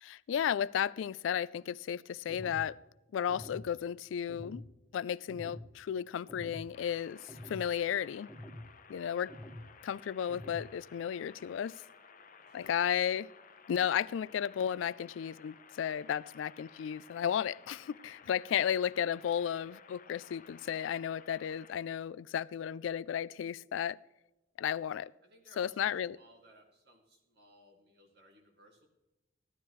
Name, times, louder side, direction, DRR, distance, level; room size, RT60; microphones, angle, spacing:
voice 1, 0.0-2.8 3.1-4.6 4.9-7.2 7.5-8.3 8.9-9.3 9.8-11.8 12.5-13.3 13.7-24.0 24.6-25.1 25.6-26.2, left 9 dB, 80° left, 0.3 m, -34 dB
sound 1, 2.3-2.7 3.3-3.7 4.3-4.7 5.3-5.7 6.3-6.7 7.3-7.7 8.3-8.7 9.3-9.7 10.3-10.7, left 1 dB, ahead, 0.9 m, -47 dB
sound 2, 6.7-21.7, left 5 dB, 45° left, 0.7 m, -57 dB
voice 2, 25.2-28.9, equal, 60° right, 2.3 m, -61 dB
15.0 x 11.5 x 3.1 m
head